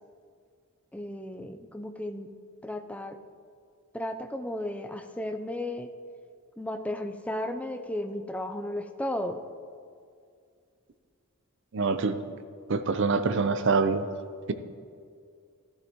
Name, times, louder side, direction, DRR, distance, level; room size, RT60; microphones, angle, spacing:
voice 1, 0.9-2.3 2.6-3.2 3.9-5.9 6.6-9.4, left 1 dB, 5° left, 7 dB, 0.5 m, -34 dB
voice 2, 11.7-12.2 12.7-14.1, right 4 dB, 55° right, 11 dB, 0.6 m, -25 dB
13.5 x 11.5 x 3.0 m, 2.2 s
head